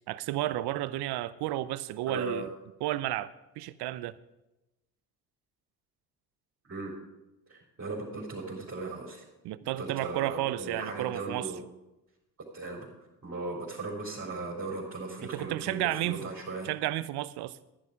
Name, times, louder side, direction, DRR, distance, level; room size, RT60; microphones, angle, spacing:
voice 1, 0.1-2.5 2.8-4.1 9.4-11.5 15.3-16.3 16.6-17.6, right 15 dB, 60° right, 0.7 m, -32 dB
voice 2, 2.1-2.5 6.6-6.9 7.5-9.2 9.8-11.6 12.5-12.9 13.2-16.7, right 3 dB, 30° right, 3.9 m, -37 dB
11.0 x 10.5 x 5.1 m
hypercardioid pair, 60°, 45 cm